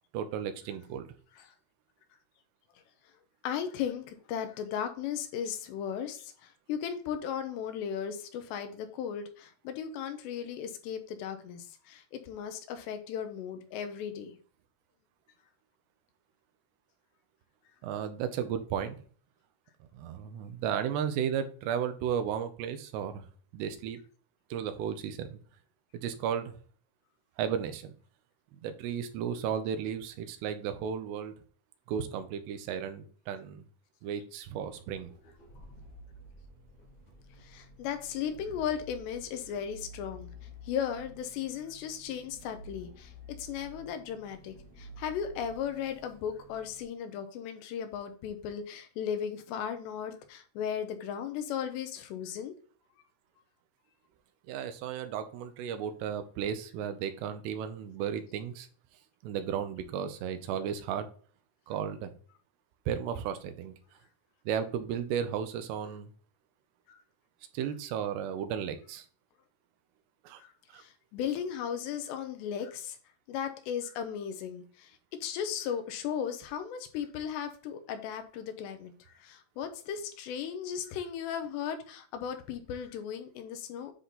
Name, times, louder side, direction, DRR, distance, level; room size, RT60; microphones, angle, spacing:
voice 1, 0.1-1.1 17.8-19.0 19.9-23.2 23.5-24.0 24.5-25.4 26.0-26.5 27.4-27.9 28.5-31.3 31.9-33.6 34.0-35.1 54.5-58.7 59.2-61.1 61.7-62.1 62.9-63.7 64.5-66.1 67.5-69.1 70.2-70.4 70.7-70.8, right 8 dB, 85° right, 9 dB, 2.9 m, -34 dB
voice 2, 3.4-14.4 37.4-40.3 40.6-52.5 66.9-67.0 70.4-73.0 73.3-83.9, left 8 dB, 85° left, 7 dB, 3.2 m, -36 dB
sound 1, 34.7-46.8, equal, 40° left, 1.5 m, -51 dB
9.9 x 3.8 x 4.1 m, 0.44 s
omnidirectional pair, 4.9 m